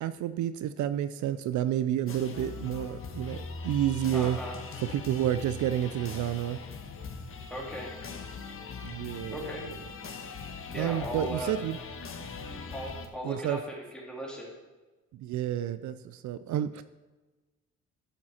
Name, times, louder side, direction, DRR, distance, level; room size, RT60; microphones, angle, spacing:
voice 1, 0.0-4.4 4.9-6.6 8.8-9.5 10.7-11.8 13.2-13.6 15.1-16.8, right 11 dB, 75° right, 13 dB, 0.5 m, -30 dB
sound 1, 2.1-13.1, left 4 dB, 45° left, 1.3 m, -41 dB
voice 2, 4.1-4.6 7.5-7.9 9.3-9.6 10.7-11.6 12.7-14.5, equal, 5° left, -3 dB, 3.3 m, -37 dB
11.0 x 7.4 x 4.3 m, 1.2 s
cardioid pair, 90°, 30 cm